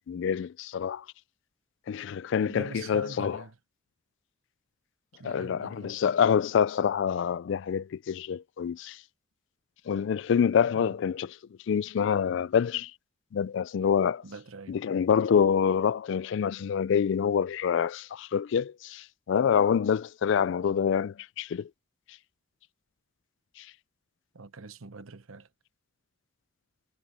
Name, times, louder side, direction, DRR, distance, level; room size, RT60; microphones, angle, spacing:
voice 1, 0.1-1.0 1.9-3.4 5.2-9.0 9.9-11.3 11.7-12.9 13.3-14.2 14.7-21.7, left 7 dB, 60° left, 0.3 m, -26 dB
voice 2, 2.5-3.6 5.1-6.0 10.7-11.0 14.2-14.8 24.3-25.5, right 4 dB, 80° right, 1.0 m, -43 dB
head